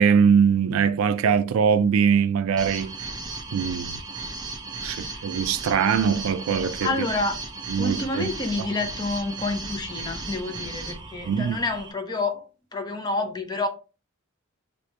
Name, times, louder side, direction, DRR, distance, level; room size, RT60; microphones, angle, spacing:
voice 1, 0.0-2.9 3.5-4.0 4.8-7.1 7.7-8.3 8.6-8.7 11.2-11.6, right 6 dB, 70° right, 0.3 m, -22 dB
sound 1, 2.6-11.9, right 3 dB, 20° right, 0.5 m, -36 dB
voice 2, 4.9-5.3 6.8-7.4 7.8-12.4 12.7-13.7, left 3 dB, 20° left, 0.6 m, -28 dB
3.0 x 2.9 x 3.2 m
head